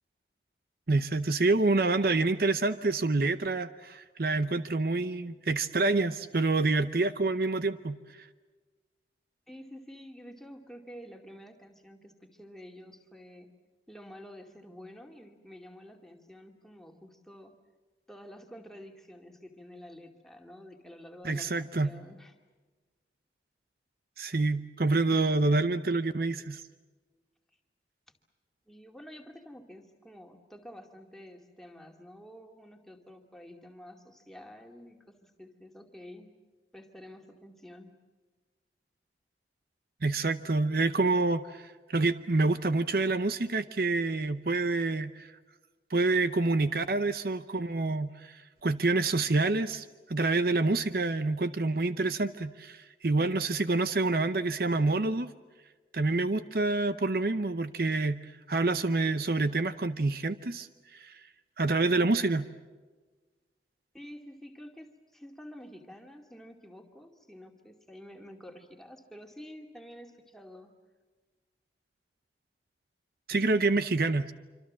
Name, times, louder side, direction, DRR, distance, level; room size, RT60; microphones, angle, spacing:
voice 1, 0.9-8.3 21.2-21.9 24.2-26.6 40.0-45.3 45.9-55.3 55.9-61.2 61.6-62.5 73.3-74.3, right 3 dB, 55° right, 12 dB, 0.8 m, -27 dB
voice 2, 9.5-13.5 13.9-17.6 18.1-22.3 28.7-36.3 36.7-38.0 63.9-70.7, equal, ahead, 3 dB, 2.3 m, -49 dB
26.5 x 26.0 x 7.4 m, 1.3 s
head